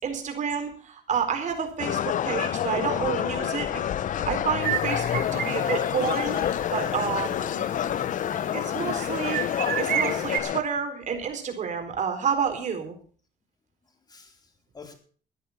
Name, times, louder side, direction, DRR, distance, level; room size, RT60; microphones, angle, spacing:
voice 1, 0.0-3.8 4.1-6.4 6.7-7.7 8.5-9.4 9.8-13.0, right 7 dB, 45° right, 5 dB, 4.1 m, -29 dB
sound 1, 1.8-10.6, left 10 dB, 50° left, 0.7 m, -28 dB
sound 2, 4.6-6.5 6.9-7.0 7.5-8.3 8.9-10.4, right 10 dB, 60° right, 1.6 m, -31 dB
voice 2, 6.2-6.7 7.6-8.1 14.1-14.9, left 5 dB, 25° left, 4 dB, 3.9 m, -48 dB
14.5 x 10.5 x 5.9 m, 0.43 s
cardioid pair, 110°, 17 cm